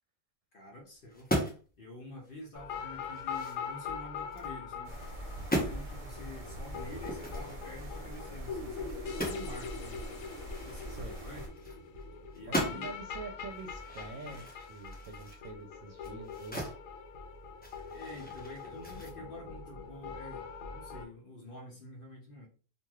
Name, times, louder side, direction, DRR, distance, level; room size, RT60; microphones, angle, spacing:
voice 1, 0.5-1.3 1.8-5.0 5.5-10.0 10.6-11.4 12.3-12.9 17.9-22.5, left 1 dB, 55° left, 1 dB, 0.6 m, -48 dB
sound 1, 1.1-1.7 2.2-2.3 2.8-4.5 4.9-5.1 5.4-5.8 6.9-9.5 9.8-9.9 10.2-12.0 12.3-13.0 13.5-16.8 17.1-19.1, equal, 15° left, 0.4 m, -38 dB
sound 2, 2.6-21.0, left 5 dB, 80° left, 1.0 m, -43 dB
sound 3, 4.8-11.5, equal, 40° right, 0.9 m, -44 dB
voice 2, 12.5-16.7, right 4 dB, 80° right, 2 dB, 1.0 m, -46 dB
3.1 x 2.6 x 2.2 m, 0.38 s
omnidirectional pair, 1.4 m